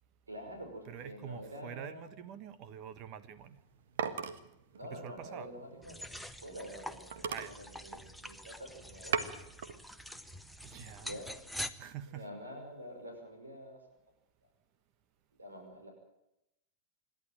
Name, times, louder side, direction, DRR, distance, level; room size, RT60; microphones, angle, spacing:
voice 1, 0.3-2.3 4.7-9.4 11.0-11.5 12.1-13.8 14.4-14.5 15.4-15.9, equal, 80° right, 4 dB, 5.7 m, -47 dB
voice 2, 0.9-3.6 4.9-5.5 7.3-7.6 10.6-11.2 11.8-12.3, right 8 dB, 40° right, 15 dB, 1.3 m, -46 dB
sound 1, 3.4-6.5 6.8-6.9 7.1-8.5 8.9-9.8 10.2-10.7, right 7 dB, 60° right, 1.6 m, -39 dB
sound 2, 5.8-11.7, left 1 dB, ahead, 1.2 m, -45 dB
26.5 x 12.0 x 9.1 m, 0.84 s
figure-of-eight pair, 90°, 0 cm